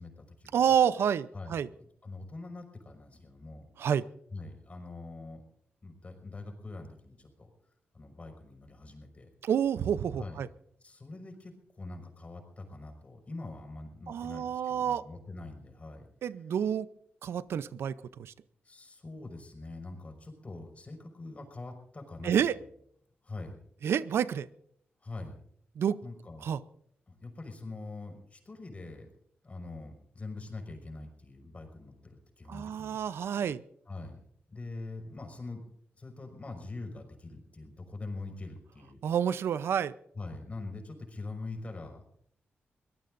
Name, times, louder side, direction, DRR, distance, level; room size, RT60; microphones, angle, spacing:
voice 1, 0.0-0.7 1.3-3.7 4.3-5.4 5.8-7.5 7.9-9.3 10.2-10.5 10.8-16.1 18.6-22.5 23.2-23.6 25.0-25.4 26.0-26.5 27.1-29.1 29.4-33.0 33.9-34.2 34.5-35.7 36.0-39.0 40.2-42.1, left 2 dB, 35° left, 4 dB, 5.3 m, -44 dB
voice 2, 0.5-1.7 3.8-4.0 9.4-10.5 14.1-15.0 16.2-16.9 17.2-18.3 22.2-22.6 23.8-24.5 25.8-26.0 26.4-26.6 32.5-33.6 39.0-39.9, right 8 dB, 80° right, 16 dB, 0.6 m, -29 dB
23.5 x 18.5 x 2.6 m, 0.67 s
cardioid pair, 75°, 4 cm